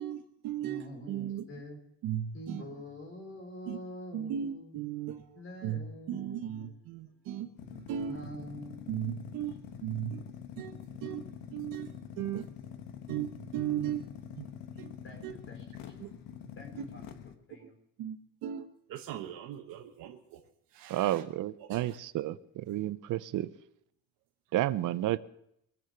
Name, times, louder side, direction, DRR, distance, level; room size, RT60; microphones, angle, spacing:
voice 1, 0.0-1.4 2.0-2.6 3.7-3.8 4.1-8.2 8.9-9.6 9.8-10.2 10.6-11.2 11.5-11.9 12.2-12.5 13.1-14.1 14.4-14.5 14.8-14.9 15.2-15.3 16.0-16.1 17.6-17.7 18.0-20.4 20.7-21.2 21.6-22.0, right 10 dB, 85° right, 1.1 m, -37 dB
voice 2, 0.6-1.8 2.3-4.7 5.3-6.8 7.1-7.2 8.0-9.2 9.5-9.6 15.0-16.1 16.6-17.8, equal, 40° left, 4.0 m, -46 dB
sound 1, 7.6-17.3, left 8 dB, 80° left, 1.4 m, -46 dB
voice 3, 20.9-23.5 24.5-25.2, right 14 dB, 65° right, 0.8 m, -31 dB
23.0 x 7.8 x 6.7 m
cardioid pair, 130°, 33 cm